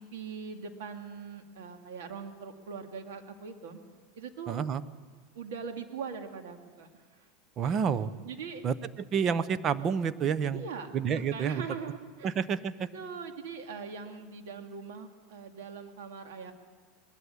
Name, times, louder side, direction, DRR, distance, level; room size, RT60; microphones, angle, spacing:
voice 1, 0.0-3.8 4.2-4.6 5.3-6.9 7.2-7.3 7.6-7.8 8.2-8.7 10.5-12.3 12.9-16.5, right 6 dB, 80° right, 5 dB, 2.3 m, -41 dB
voice 2, 4.5-4.8 7.6-8.1 8.6-8.7 9.1-10.7 10.9-11.6 12.2-12.9, right 7 dB, 35° right, 15 dB, 0.8 m, -29 dB
20.5 x 13.0 x 9.7 m, 1.5 s
supercardioid pair, 135°, 0 cm